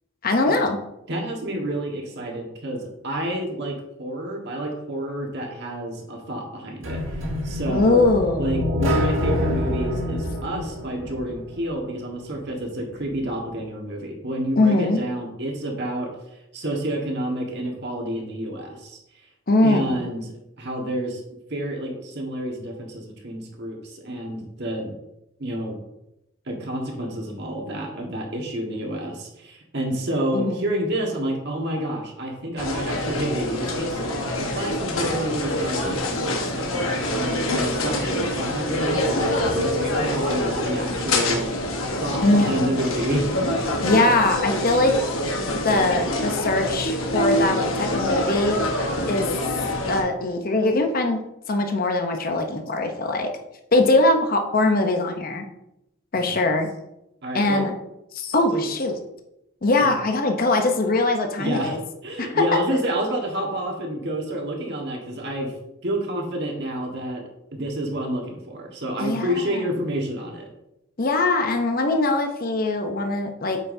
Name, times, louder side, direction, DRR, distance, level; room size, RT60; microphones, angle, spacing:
voice 1, 0.2-0.8 7.7-8.5 14.6-15.0 19.5-20.0 30.3-30.7 42.2-42.7 43.8-45.0 45.6-48.6 49.1-49.3 49.9-51.2 51.5-53.3 53.7-55.4 56.1-56.7 57.3-57.7 58.1-59.0 59.6-61.8 62.2-62.6 69.0-69.6 71.0-73.6, left 2 dB, 45° left, 5 dB, 0.8 m, -21 dB
voice 2, 1.1-7.0 7.4-8.1 8.4-16.1 16.5-19.0 19.6-20.3 20.6-21.2 21.5-24.9 25.4-25.8 26.5-41.6 42.0-43.3 56.1-56.4 57.2-57.7 58.5-58.6 59.8-59.9 61.4-61.8 62.0-65.5 65.8-67.2 67.5-70.5, right 1 dB, 55° right, 0 dB, 1.5 m, -29 dB
sound 1, 6.8-11.8, left 1 dB, 70° right, 1.6 m, -26 dB
sound 2, 32.6-50.0, left 1 dB, 80° left, 1.2 m, -25 dB
8.3 x 5.8 x 2.7 m, 0.86 s
head